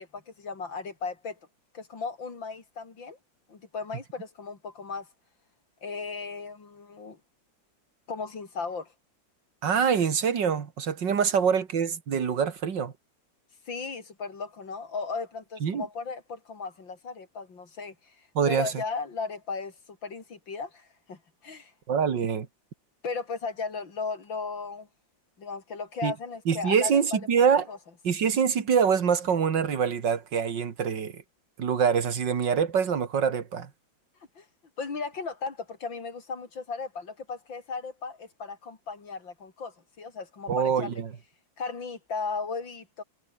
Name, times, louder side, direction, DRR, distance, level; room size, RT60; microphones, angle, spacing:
voice 1, 0.0-1.4 1.7-3.2 3.5-5.1 5.8-7.2 8.1-8.9 13.7-18.2 18.5-21.7 23.0-24.9 25.4-27.2 27.7-27.8 34.4-34.5 34.8-40.9 41.6-43.0, left 4 dB, 85° left, 4.2 m, -36 dB
voice 2, 9.6-12.9 15.6-15.9 18.4-18.8 21.9-22.5 26.0-26.1 26.5-27.6 28.0-31.2 31.6-33.7 40.5-41.1, right 7 dB, 70° right, 2.5 m, -25 dB
omnidirectional pair, 2.0 m